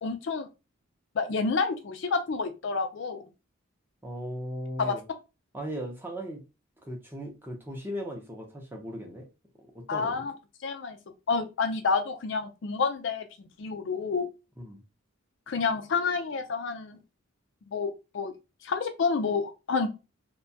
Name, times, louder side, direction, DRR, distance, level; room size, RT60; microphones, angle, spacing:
voice 1, 0.0-0.5 1.2-3.2 4.8-4.9 9.9-10.3 10.6-11.0 11.3-14.3 15.5-17.0 17.7-18.3 18.6-19.9, left 4 dB, 55° left, 0.4 m, -29 dB
voice 2, 4.0-5.0 5.5-6.4 6.8-9.3 9.6-10.3 14.6-14.8, equal, 10° right, 0.5 m, -37 dB
2.7 x 2.2 x 2.6 m
head